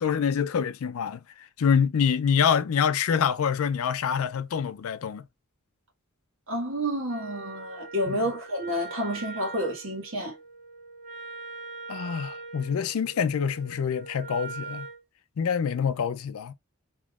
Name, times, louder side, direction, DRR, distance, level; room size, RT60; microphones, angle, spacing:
voice 1, 0.0-1.2 1.6-5.2 8.1-8.2 11.9-14.9 15.4-16.5, left 7 dB, 80° left, 0.4 m, -26 dB
voice 2, 6.5-10.4, equal, 65° right, 1.5 m, -30 dB
Wind instrument woodwind instrument, 7.1-15.0, right 4 dB, 40° right, 1.7 m, -42 dB
3.6 x 2.9 x 2.3 m
head